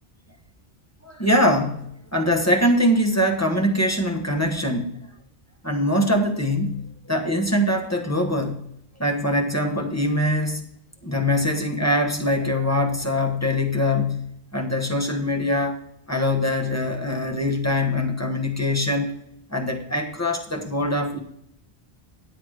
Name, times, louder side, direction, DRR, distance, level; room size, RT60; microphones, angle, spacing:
voice 1, 1.0-5.0 5.6-8.6 9.0-10.7 11.0-15.8 16.1-19.1 19.5-21.2, left 1 dB, 15° left, 2 dB, 1.1 m, -23 dB
10.5 x 8.1 x 4.8 m, 0.73 s
omnidirectional pair, 1.1 m